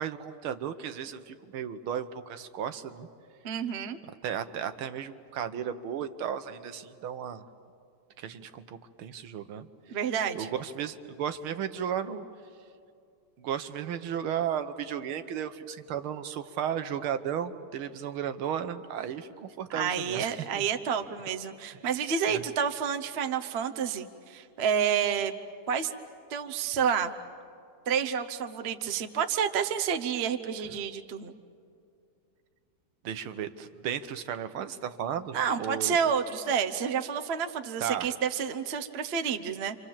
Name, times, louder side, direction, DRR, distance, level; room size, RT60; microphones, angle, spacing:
voice 1, 0.0-3.1 4.2-7.5 8.2-10.0 10.4-12.3 13.4-20.7 22.3-22.4 33.0-36.0 37.8-38.1, right 8 dB, 75° right, 10 dB, 1.8 m, -34 dB
voice 2, 3.4-4.0 9.9-10.5 19.7-25.4 25.7-25.9 26.3-27.1 27.9-31.3 35.3-39.8, right 7 dB, 45° right, 7 dB, 0.8 m, -29 dB
28.5 x 26.0 x 7.4 m, 2.4 s
omnidirectional pair, 2.4 m